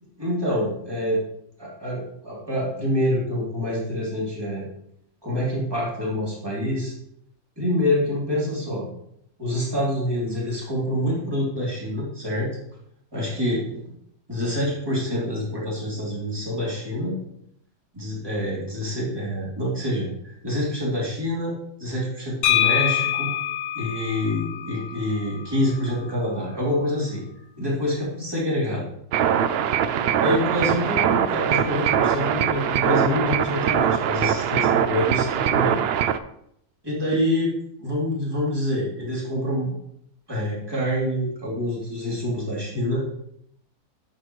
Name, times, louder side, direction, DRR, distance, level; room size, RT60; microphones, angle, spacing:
voice 1, 0.2-1.2 1.6-4.6 5.2-6.9 7.6-8.9 9.4-12.5 13.1-13.6 14.3-17.2 17.9-23.3 23.7-27.2 27.6-28.8 30.2-35.8 36.8-37.5 37.8-39.7 40.3-43.0, left 1 dB, 15° right, -6 dB, 2.8 m, -26 dB
sound 1, 22.4-26.2, left 11 dB, 60° left, 1.1 m, -26 dB
sound 2, 29.1-36.2, right 9 dB, 80° right, 0.5 m, -22 dB
10.5 x 6.8 x 3.1 m, 0.74 s
omnidirectional pair, 1.6 m